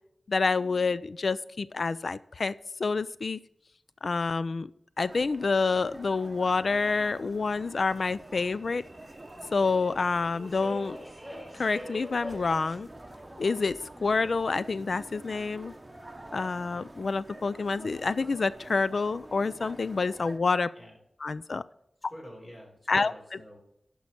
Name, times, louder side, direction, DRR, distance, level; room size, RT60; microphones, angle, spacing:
voice 1, 0.3-3.4 4.0-4.7 5.0-8.8 9.5-11.0 11.5-12.9 13.4-15.7 16.3-20.7 21.2-21.6 22.9-23.1, left 4 dB, 65° left, 16 dB, 0.3 m, -28 dB
sound 1, 5.0-20.4, right 1 dB, 25° right, 0.9 m, -47 dB
Subway metro underground, 6.5-17.0, equal, 5° right, 4.2 m, -48 dB
voice 2, 22.1-23.6, equal, 35° left, 0 dB, 3.8 m, -47 dB
10.5 x 5.4 x 5.8 m, 0.77 s
wide cardioid pair, 75°, 0 cm